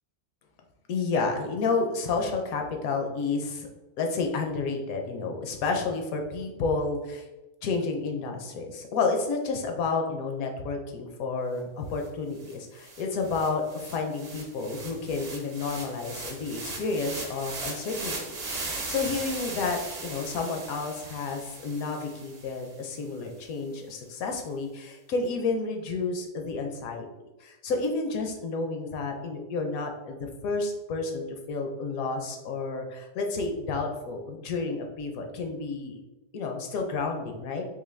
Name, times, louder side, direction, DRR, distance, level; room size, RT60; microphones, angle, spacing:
voice 1, 0.9-3.7 4.0-7.2 7.6-27.1 27.4-36.0 36.3-37.7, left 4 dB, 70° left, 3 dB, 1.0 m, -30 dB
sound 1, 12.0-12.1 12.4-22.7, right 3 dB, 50° right, 0.9 m, -38 dB
3.8 x 2.9 x 3.2 m, 1.0 s
omnidirectional pair, 1.7 m